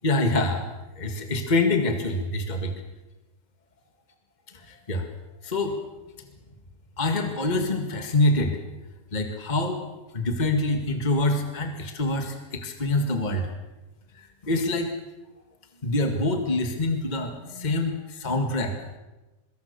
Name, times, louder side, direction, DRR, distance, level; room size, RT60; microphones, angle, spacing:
voice 1, 0.0-0.7 1.0-2.7 4.7-5.1 5.4-5.7 7.0-8.6 9.1-13.5 14.2-14.9 15.8-18.7, left 2 dB, 25° left, 5 dB, 2.0 m, -25 dB
24.5 x 22.0 x 6.9 m, 1.1 s
omnidirectional pair, 1.7 m